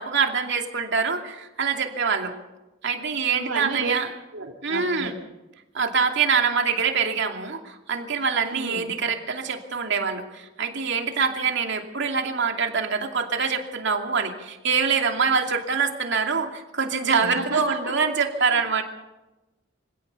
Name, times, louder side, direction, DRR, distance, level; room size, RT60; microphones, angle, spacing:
voice 1, 0.0-2.3 2.8-4.1 4.6-5.1 5.7-18.8, right 5 dB, 65° right, 4 dB, 2.7 m, -25 dB
voice 2, 3.3-3.9 4.3-5.1 8.4-8.9 17.2-17.9 18.5-18.6, right 3 dB, 85° right, 0 dB, 2.4 m, -32 dB
25.5 x 17.0 x 6.8 m, 1.0 s
head